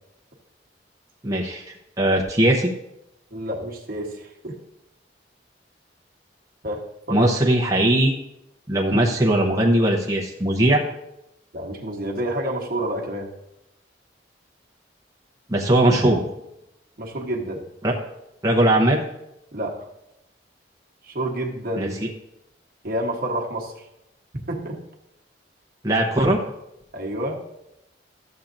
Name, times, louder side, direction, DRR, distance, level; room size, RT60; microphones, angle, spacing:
voice 1, 1.2-1.6 2.0-2.7 7.1-8.1 8.7-10.8 15.5-16.2 17.8-17.9 18.4-19.0 21.8-22.1 25.8-26.4, right 1 dB, 20° right, -3 dB, 0.8 m, -19 dB
voice 2, 3.3-4.6 6.6-7.3 11.5-13.3 17.0-17.6 19.5-19.9 21.0-21.9 22.8-23.9 24.5-24.8 26.9-27.4, right 1 dB, 55° right, 0 dB, 1.2 m, -29 dB
13.0 x 7.1 x 2.6 m, 0.87 s
head